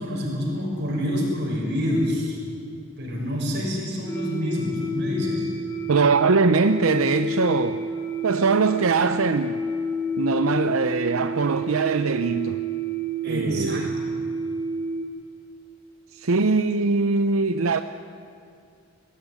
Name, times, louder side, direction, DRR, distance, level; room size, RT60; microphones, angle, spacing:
voice 1, 0.0-2.4 3.0-5.5 13.2-14.1, left 1 dB, 55° right, 6.6 m, -27 dB
sound 1, 4.1-15.0, right 1 dB, 20° left, 2.8 m, -29 dB
voice 2, 5.9-7.8 8.2-9.6 10.2-12.6 13.3-13.9 16.1-17.8, right 4 dB, 90° right, 0.7 m, -22 dB
20.5 x 16.0 x 9.7 m
head